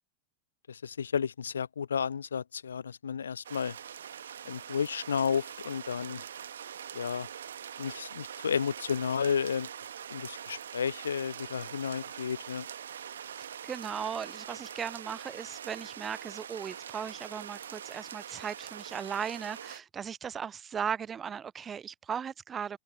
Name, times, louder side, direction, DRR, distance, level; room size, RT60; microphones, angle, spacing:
voice 1, 0.7-3.8 4.5-6.2 6.9-7.3 7.8-9.7 10.1-12.7, left 7 dB, 70° left, 0.4 m, -32 dB
sound 1, 3.4-19.8, right 9 dB, 65° right, 1.3 m, -43 dB
voice 2, 13.4-22.8, right 7 dB, 20° right, 0.5 m, -37 dB
figure-of-eight pair, 90°, 0 cm